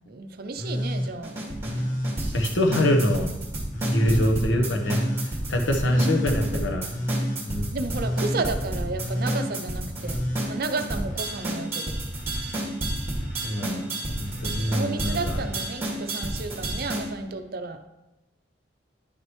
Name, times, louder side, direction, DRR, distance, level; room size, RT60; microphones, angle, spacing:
voice 1, 0.1-1.4 4.1-4.4 5.8-6.8 7.7-11.9 14.7-17.8, right 3 dB, 50° right, 7 dB, 0.6 m, -33 dB
Telephone, 0.6-1.1 1.6-2.2 2.7-3.2 3.7-4.3 4.8-5.3 5.8-6.4 6.9-7.4 7.9-8.5 8.9-9.5 10.0-11.6 11.8-12.6 13.2-13.7 14.2-14.7 15.3-15.8 17.0-17.1, equal, 45° left, 1.2 m, -31 dB
sound 1, 1.2-17.1, right 1 dB, 15° right, 1.9 m, -30 dB
voice 2, 2.3-3.3 3.9-6.9 7.4-7.8 13.4-15.4, left 1 dB, 75° left, 3 dB, 1.0 m, -25 dB
9.8 x 6.4 x 3.1 m, 1.0 s
head